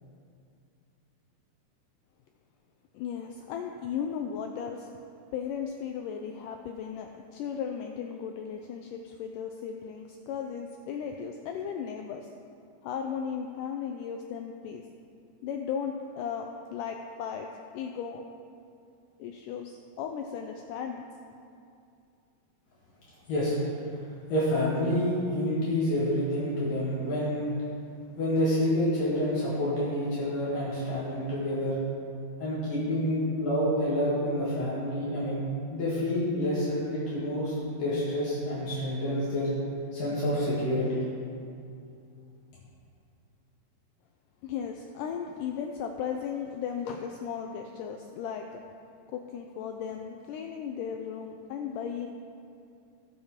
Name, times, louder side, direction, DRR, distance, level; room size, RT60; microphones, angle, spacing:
voice 1, 2.9-4.9 5.3-12.3 12.8-14.8 15.4-17.5 17.7-18.3 19.2-21.1 44.4-48.6 49.1-52.1, left 7 dB, 85° left, 3 dB, 1.8 m, -36 dB
voice 2, 24.3-27.5 28.2-31.8 32.4-35.4 35.7-39.5 39.9-41.0, left 1 dB, 65° left, -9 dB, 3.6 m, -28 dB
19.0 x 7.2 x 3.6 m, 2.5 s
omnidirectional pair, 4.3 m